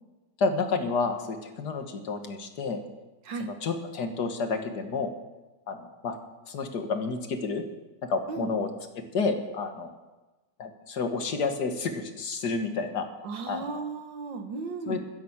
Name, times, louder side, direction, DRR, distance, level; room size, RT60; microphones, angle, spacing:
voice 1, 0.4-2.8 3.4-5.1 5.7-6.2 6.5-7.6 8.0-8.7 9.1-9.9 10.6-13.1 13.5-13.8 14.9-15.0, left 4 dB, 65° left, 6 dB, 2.0 m, -30 dB
voice 2, 13.2-15.0, right 4 dB, 80° right, 5 dB, 2.1 m, -35 dB
12.5 x 11.0 x 7.3 m, 1.2 s
omnidirectional pair, 2.0 m